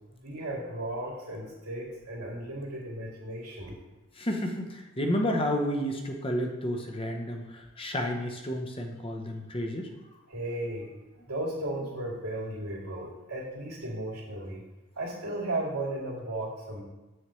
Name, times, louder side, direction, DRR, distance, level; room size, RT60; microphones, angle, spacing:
voice 1, 0.2-3.8 10.3-10.9 11.2-14.6 15.0-16.8, right 1 dB, 90° right, -5 dB, 2.4 m, -35 dB
voice 2, 4.2-9.9, equal, 25° left, 3 dB, 0.7 m, -31 dB
8.0 x 6.4 x 3.2 m, 1.1 s
head